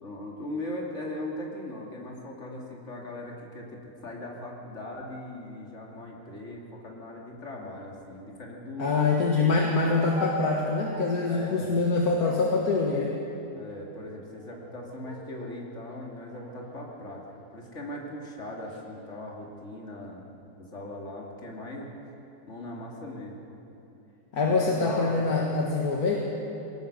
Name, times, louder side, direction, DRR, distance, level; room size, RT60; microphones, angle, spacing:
voice 1, 0.0-8.9 11.2-11.9 13.6-17.3 17.5-21.9 22.5-23.5 24.4-25.3, left 1 dB, 40° left, -1 dB, 3.0 m, -39 dB
voice 2, 8.8-13.2 24.3-26.2, left 3 dB, 55° left, -1 dB, 2.1 m, -25 dB
sound 1, 10.1-11.4 12.2-13.4 14.2-14.7 15.0-15.6 16.3-17.6 18.4-18.8, left 1 dB, 50° right, 2.7 m, -42 dB
22.5 x 18.0 x 6.8 m, 2.9 s
omnidirectional pair, 1.9 m